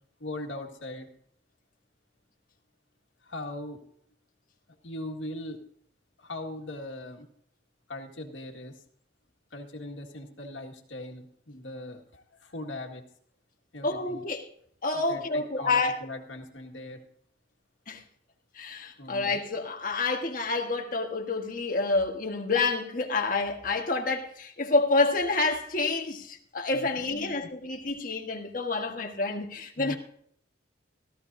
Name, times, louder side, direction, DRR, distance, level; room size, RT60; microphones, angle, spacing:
voice 1, 0.2-1.1 3.2-3.8 4.8-5.6 6.2-7.3 7.9-8.8 9.5-13.1 13.7-14.2 14.9-17.0 19.0-19.4 26.7-27.4 29.8-30.0, left 1 dB, 85° left, 1.9 m, -40 dB
voice 2, 13.8-14.5 14.8-15.9 17.9-18.0 18.6-30.0, left 3 dB, 45° left, 1.5 m, -28 dB
16.5 x 14.0 x 2.7 m
head